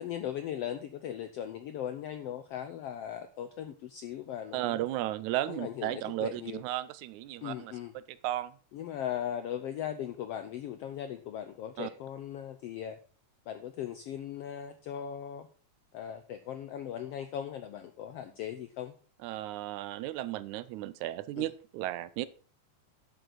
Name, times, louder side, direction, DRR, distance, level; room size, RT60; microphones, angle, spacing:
voice 1, 0.0-4.8 5.5-6.6 7.4-7.9 8.7-13.0 13.5-15.5 15.9-18.9 21.4-21.5, left 10 dB, 85° left, 9 dB, 1.4 m, -38 dB
voice 2, 4.5-8.5 11.8-11.9 19.2-22.3, right 14 dB, 80° right, 16 dB, 2.0 m, -35 dB
12.0 x 7.8 x 4.0 m, 0.40 s
omnidirectional pair, 3.6 m